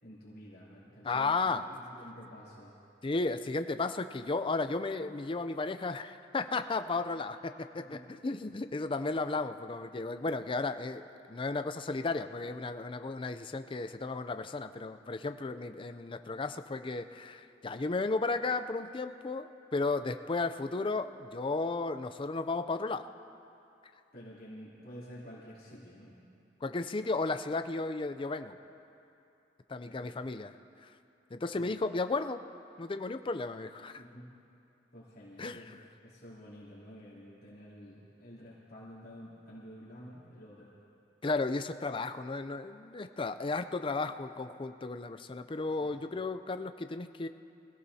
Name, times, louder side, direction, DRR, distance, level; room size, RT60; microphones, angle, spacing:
voice 1, 0.0-2.7 7.7-8.0 24.1-26.2 29.8-30.1 31.6-31.7 33.9-34.2 34.9-40.7 45.8-45.9, equal, 55° left, -9 dB, 3.2 m, -50 dB
voice 2, 1.0-1.7 3.0-23.1 26.6-28.6 29.7-30.5 30.8-30.9 31.3-32.4 32.8-34.0 35.4-35.8 41.2-47.3, left 3 dB, 30° left, 9 dB, 0.5 m, -34 dB
25.5 x 16.5 x 2.8 m, 2.7 s
head